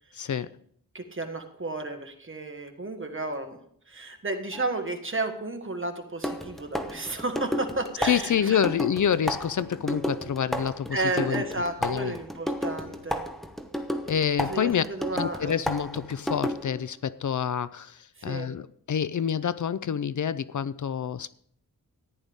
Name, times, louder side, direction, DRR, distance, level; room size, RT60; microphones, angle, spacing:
voice 1, 0.1-0.5 8.0-11.4 11.8-12.1 14.1-14.8 15.1-21.3, left 8 dB, 60° left, 0.5 m, -27 dB
voice 2, 0.9-3.6 3.9-8.6 10.9-13.3 14.5-15.6 18.2-18.5, right 2 dB, 35° right, 1.6 m, -32 dB
sound 1, 4.5-4.7 6.2-16.8, equal, ahead, 1.1 m, -32 dB
14.5 x 10.5 x 3.6 m
wide cardioid pair, 80°, 34 cm